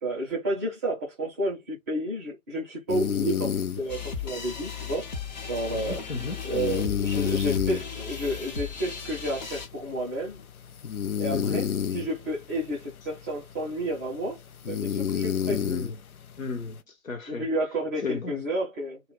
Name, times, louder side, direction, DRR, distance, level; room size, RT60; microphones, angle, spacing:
voice 1, 0.0-5.1 5.5-6.0 6.5-10.5 11.2-11.7 11.9-15.6 17.3-19.0, right 1 dB, 10° right, 0.6 m, -31 dB
sound 1, 2.9-16.8, left 8 dB, 85° left, 0.5 m, -32 dB
sound 2, 3.9-9.7, left 6 dB, 35° left, 0.6 m, -36 dB
voice 2, 5.7-6.4 11.3-11.6 15.5-16.0 16.4-16.8 17.0-17.5 18.0-18.4, left 4 dB, 65° left, 1.1 m, -34 dB
2.3 x 2.1 x 3.7 m
figure-of-eight pair, 130°, 42 cm